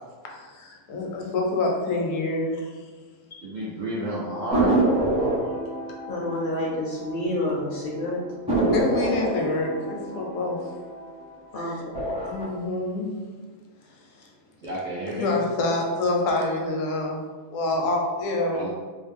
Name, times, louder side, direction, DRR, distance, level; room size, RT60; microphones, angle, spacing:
voice 1, 0.3-2.7 3.3-3.4 8.7-10.6 11.5-11.8 12.2-13.1 14.2-14.3 15.1-17.2 17.5-18.6, left 2 dB, 80° left, 0 dB, 1.0 m, -27 dB
voice 2, 3.4-5.7 14.6-15.3 18.5-18.7, right 1 dB, 60° right, -8 dB, 0.5 m, -31 dB
sound 1, 4.5-7.6 7.9-8.0 8.5-11.4 11.8-12.4, right 2 dB, 5° right, 0.5 m, -26 dB
voice 3, 6.1-8.2 11.5-11.8, left 1 dB, 65° left, -4 dB, 0.6 m, -28 dB
2.5 x 2.0 x 3.3 m, 1.4 s
omnidirectional pair, 1.4 m